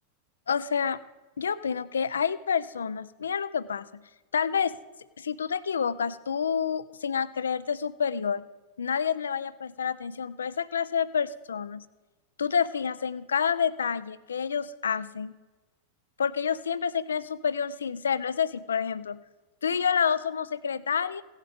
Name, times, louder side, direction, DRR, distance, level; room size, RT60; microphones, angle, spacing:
voice 1, 0.5-1.0 1.4-4.0 4.3-4.7 5.2-8.5 8.8-11.9 12.4-15.3 16.2-19.2 19.6-21.2, left 7 dB, 70° left, 17 dB, 0.5 m, -28 dB
16.5 x 11.0 x 3.6 m, 1.2 s
figure-of-eight pair, 90°, 0 cm